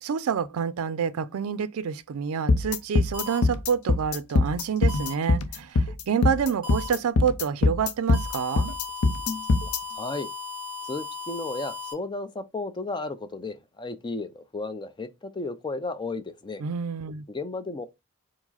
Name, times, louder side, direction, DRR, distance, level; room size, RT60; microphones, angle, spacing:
voice 1, 0.0-8.7 16.6-17.3, right 7 dB, 75° right, 0.4 m, -28 dB
sound 1, 2.5-9.8, left 3 dB, 85° left, 0.6 m, -23 dB
sound 2, 3.1-3.4 4.9-5.1 6.6-6.9 8.1-11.9, left 5 dB, 25° right, 1.2 m, -36 dB
voice 2, 9.9-10.3 10.8-16.6 17.3-17.9, left 3 dB, 20° left, 0.4 m, -34 dB
4.7 x 2.0 x 3.9 m
head